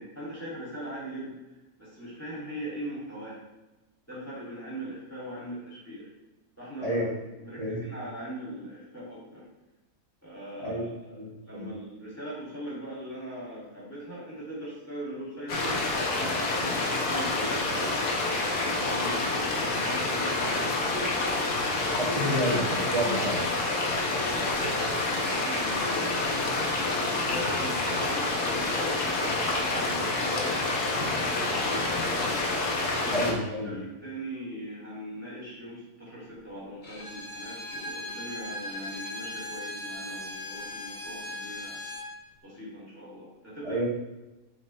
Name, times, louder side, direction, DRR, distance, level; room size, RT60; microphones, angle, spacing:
voice 1, 0.0-1.4 1.8-3.4 4.1-6.1 6.6-7.1 7.3-9.4 10.2-18.1 18.5-21.1 22.1-22.4 24.0-27.0 27.2-32.3 32.9-41.8 42.4-43.8, equal, 10° left, -7 dB, 2.3 m, -40 dB
voice 2, 11.2-11.7 22.0-23.4 33.1-33.8 43.6-43.8, right 1 dB, 25° right, -10 dB, 2.3 m, -29 dB
sound 1, 15.5-33.3, left 2 dB, 80° left, 1.6 m, -28 dB
Bowed string instrument, 36.8-42.1, left 1 dB, 35° left, 1.2 m, -38 dB
8.2 x 4.9 x 3.1 m, 1.0 s
omnidirectional pair, 1.6 m